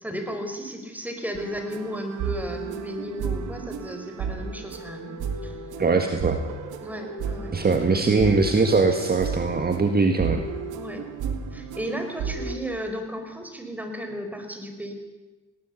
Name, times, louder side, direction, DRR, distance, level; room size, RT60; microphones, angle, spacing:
voice 1, 0.0-5.2 5.4-5.5 6.8-7.6 10.7-11.0 11.5-14.9, equal, 5° right, 5 dB, 4.8 m, -34 dB
sound 1, 1.3-12.6, right 6 dB, 90° right, 2.4 m, -33 dB
voice 2, 5.8-6.4 7.5-10.5, right 3 dB, 30° right, 6 dB, 1.9 m, -21 dB
20.5 x 18.0 x 8.4 m, 1.2 s
cardioid pair, 90°, 30 cm